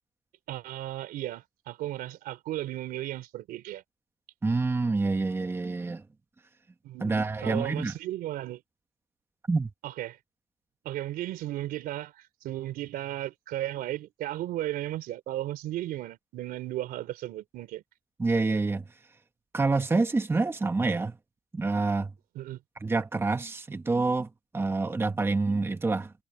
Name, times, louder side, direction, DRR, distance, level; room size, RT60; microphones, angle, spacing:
voice 1, 0.5-3.8 6.8-8.6 9.8-10.2 10.8-17.8 22.3-22.6, right 14 dB, 85° right, 3.2 m, -35 dB
voice 2, 4.4-6.0 7.0-7.9 9.5-9.7 18.2-18.8 19.5-21.2 21.5-22.1 22.8-26.1, right 3 dB, 15° right, 1.2 m, -27 dB
cardioid pair, 130°, 15 cm